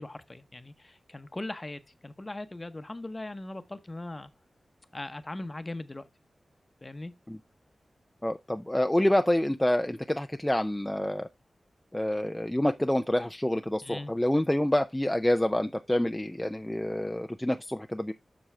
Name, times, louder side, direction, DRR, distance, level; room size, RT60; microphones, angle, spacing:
voice 1, 0.0-4.3 4.9-6.1 6.8-7.1 13.8-14.1, left 2 dB, 25° left, 0.9 m, -39 dB
voice 2, 8.2-11.3 11.9-18.1, left 1 dB, 10° left, 0.4 m, -27 dB
7.4 x 6.3 x 3.3 m
wide cardioid pair, 80°, 0 cm